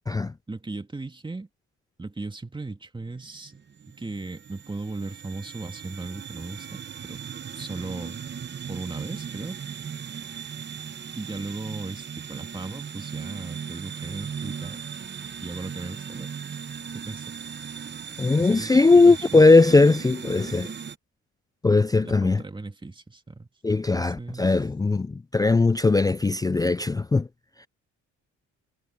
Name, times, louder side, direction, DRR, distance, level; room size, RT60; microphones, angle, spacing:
voice 1, 0.5-1.5 2.0-3.6 3.9-6.7 7.0-7.2 7.5-8.2 8.7-9.6 11.2-14.8 15.4-16.6 17.0-17.4 18.4-19.4 22.0-23.5 23.9-24.5, right 3 dB, 15° right, 2.3 m, -37 dB
sound 1, 3.0-21.0, right 7 dB, 35° right, 1.0 m, -38 dB
voice 2, 18.2-20.7 21.6-22.4 23.6-27.3, left 3 dB, 15° left, 0.3 m, -19 dB
cardioid pair, 90°, 30 cm